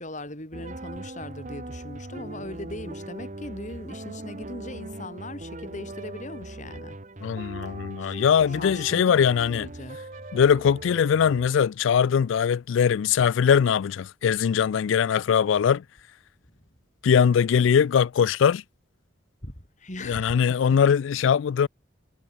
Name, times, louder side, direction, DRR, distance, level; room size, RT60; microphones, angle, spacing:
voice 1, 0.0-7.0 7.6-7.7 8.0-8.2 8.6-9.1 9.5-10.0 19.4-20.8, left 1 dB, 35° left, 6.5 m, -39 dB
sound 1, 0.5-11.5, right 2 dB, 35° right, 1.3 m, -40 dB
voice 2, 7.2-9.7 10.3-15.8 17.0-18.6 20.0-21.7, left 7 dB, 70° left, 0.3 m, -21 dB
head